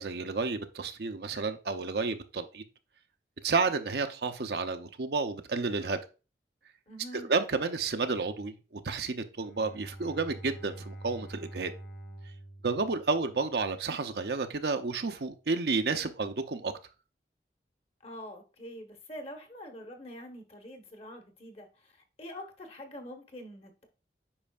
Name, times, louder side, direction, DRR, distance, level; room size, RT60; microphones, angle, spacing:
voice 1, 0.0-2.6 3.4-6.0 7.3-11.7 12.6-16.7, right 4 dB, 65° right, 0.6 m, -31 dB
voice 2, 6.9-7.3 18.0-23.9, equal, 35° left, 1.1 m, -45 dB
Bowed string instrument, 9.4-13.7, right 1 dB, 75° left, 3.4 m, -46 dB
8.7 x 5.3 x 2.4 m
head